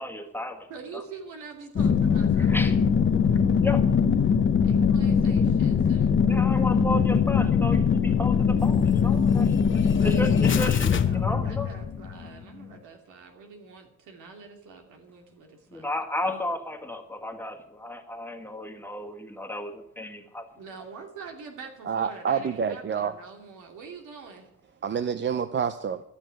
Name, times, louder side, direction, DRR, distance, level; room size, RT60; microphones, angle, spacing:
voice 1, 0.0-1.0 2.4-2.8 3.6-3.9 6.3-11.7 15.7-20.5, left 1 dB, 5° left, 3 dB, 1.7 m, -33 dB
voice 2, 0.7-2.6 4.6-6.2 9.8-15.9 20.6-24.5, right 5 dB, 85° right, 3 dB, 2.7 m, -45 dB
sound 1, 1.8-12.3 12.6-12.7, left 6 dB, 40° left, 0.9 m, -22 dB
voice 3, 21.9-23.1 24.8-26.0, right 7 dB, 40° right, 12 dB, 0.6 m, -27 dB
12.5 x 6.3 x 9.1 m, 0.79 s
cardioid pair, 90°, 30 cm